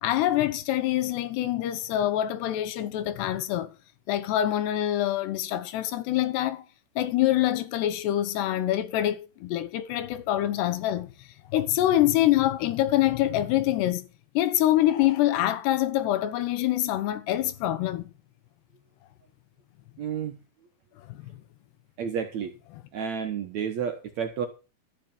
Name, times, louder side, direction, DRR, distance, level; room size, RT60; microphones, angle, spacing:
voice 1, 0.0-3.7 4.1-6.6 7.0-11.1 11.5-14.1 14.3-18.1 21.1-21.3, left 13 dB, 90° left, 3.2 m, -25 dB
voice 2, 20.0-20.4 22.0-22.5 22.9-24.5, right 7 dB, 65° right, 1.8 m, -31 dB
13.5 x 6.2 x 7.2 m
omnidirectional pair, 4.6 m